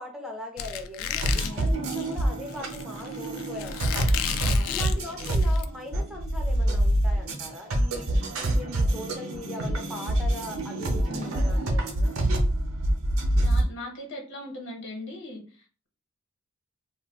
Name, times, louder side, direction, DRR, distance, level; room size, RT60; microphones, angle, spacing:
voice 1, 0.0-1.3 1.6-4.1 4.7-12.2, left 1 dB, ahead, 1 dB, 0.3 m, -40 dB
Squeak, 0.6-5.7, left 7 dB, 85° left, 0.3 m, -33 dB
sound 1, 1.2-13.6, right 1 dB, 80° right, 0.7 m, -26 dB
voice 2, 1.3-1.7 4.4-4.8 11.1-11.3 13.4-15.9, left 1 dB, 60° left, 0 dB, 1.0 m, -40 dB
2.3 x 2.3 x 3.4 m, 0.38 s
head